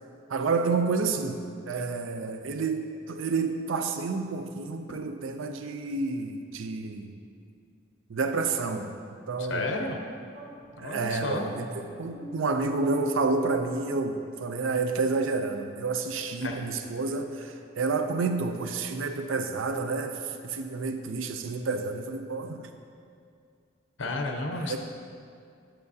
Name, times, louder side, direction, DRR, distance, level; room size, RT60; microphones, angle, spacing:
voice 1, 0.3-1.4 1.7-7.1 8.1-8.9 9.3-9.7 10.8-22.7 24.5-24.8, right 4 dB, 85° right, 7 dB, 0.5 m, -29 dB
voice 2, 9.5-10.0 10.8-11.5 16.4-16.6 24.0-24.8, left 2 dB, 75° left, 3 dB, 0.8 m, -31 dB
sound 1, 10.3-13.8, right 2 dB, 50° right, 1.4 m, -44 dB
8.7 x 7.4 x 2.7 m, 2.3 s
head